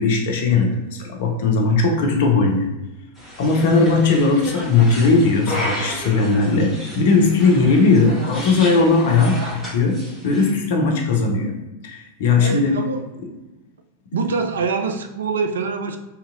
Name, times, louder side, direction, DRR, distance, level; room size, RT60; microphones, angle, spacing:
voice 1, 0.0-2.7 3.4-10.0 10.2-11.5 11.8-12.8, left 3 dB, 55° left, 2 dB, 0.5 m, -18 dB
sound 1, 3.2-10.5, equal, 10° right, 1.4 m, -33 dB
voice 2, 12.4-13.0 14.1-16.0, right 4 dB, 65° right, 5 dB, 0.3 m, -24 dB
2.8 x 2.7 x 2.5 m, 1.0 s
figure-of-eight pair, 90°, 0 cm